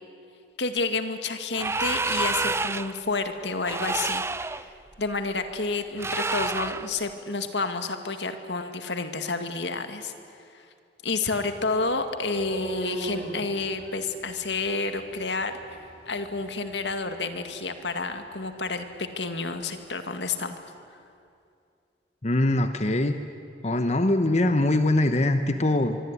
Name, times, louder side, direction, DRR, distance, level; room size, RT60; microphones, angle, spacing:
voice 1, 0.6-4.2 5.0-10.1 11.0-15.5 16.1-20.6, left 3 dB, 80° left, 8 dB, 2.1 m, -30 dB
sound 1, 1.5-3.0 3.6-4.6 6.0-6.9, right 3 dB, 15° right, 0.6 m, -28 dB
sound 2, 11.3-19.2, right 1 dB, 75° right, 5.4 m, -41 dB
voice 2, 22.2-23.2 23.6-26.0, left 1 dB, 40° left, 8 dB, 1.0 m, -22 dB
24.5 x 24.0 x 9.9 m, 2.5 s
head